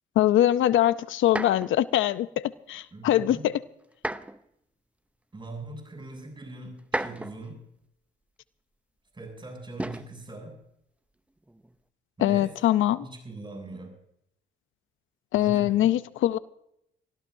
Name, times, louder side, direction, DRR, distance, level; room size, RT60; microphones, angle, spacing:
voice 1, 0.2-3.5 12.2-13.0 15.3-16.4, left 12 dB, 80° left, 15 dB, 0.6 m, -23 dB
sound 1, 1.2-1.8 3.9-4.5 5.5-5.6 6.8-7.5 9.8-10.2 11.4-11.8, right 1 dB, 5° right, 0.7 m, -33 dB
voice 2, 2.9-3.5 5.3-7.7 9.1-10.6 12.2-12.6 13.0-13.9 15.3-15.9, right 2 dB, 25° right, 3 dB, 7.5 m, -41 dB
25.0 x 15.0 x 2.7 m, 0.76 s
cardioid pair, 90°, 20 cm